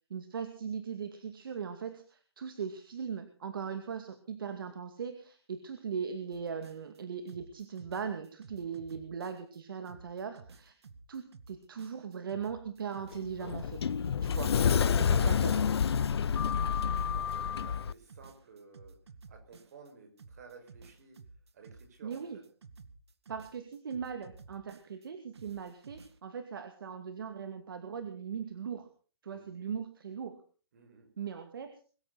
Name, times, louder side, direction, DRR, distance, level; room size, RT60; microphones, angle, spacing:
voice 1, 0.1-10.8 11.1-13.9 14.2-14.6 15.0-15.6 22.0-22.4 23.3-28.9 29.2-30.4 31.2-31.7, right 6 dB, 55° right, 8 dB, 2.3 m, -39 dB
sound 1, 6.3-7.0 7.3-9.6 9.8-14.7 15.0-17.3 17.6-19.9 20.2-25.1 25.3-26.2, right 4 dB, 75° right, 2.1 m, -54 dB
Sliding door, 13.1-17.9, left 7 dB, 75° left, 0.7 m, -28 dB
voice 2, 14.9-15.4 15.9-19.0 19.3-21.2 21.5-22.4 29.3-29.5 30.7-31.1, right 5 dB, 40° right, 5 dB, 5.6 m, -54 dB
22.5 x 14.0 x 4.1 m, 0.39 s
hypercardioid pair, 180°, 14 cm